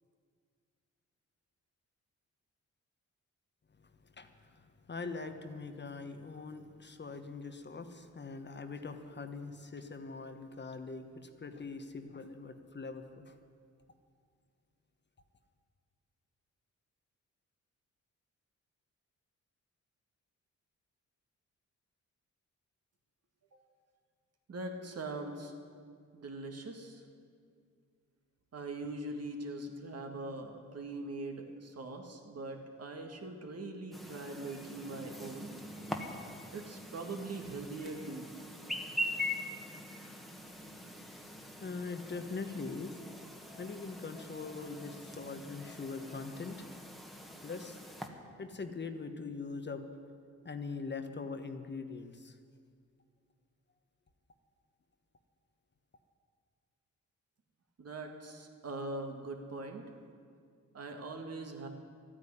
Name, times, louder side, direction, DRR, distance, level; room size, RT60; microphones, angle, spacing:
voice 1, 3.8-13.4 40.4-43.0 43.4-46.7 47.4-47.8 48.4-49.8 50.4-52.4, left 4 dB, 35° left, 7 dB, 1.1 m, -43 dB
voice 2, 24.5-25.5 26.1-27.1 28.5-35.5 36.5-38.3 57.8-59.9 60.7-61.7, right 2 dB, 55° right, 3 dB, 2.0 m, -42 dB
Chirp tweet, 33.9-48.1, left 1 dB, ahead, 1.5 m, -43 dB
13.0 x 9.9 x 9.8 m, 2.2 s
cardioid pair, 90°, 30 cm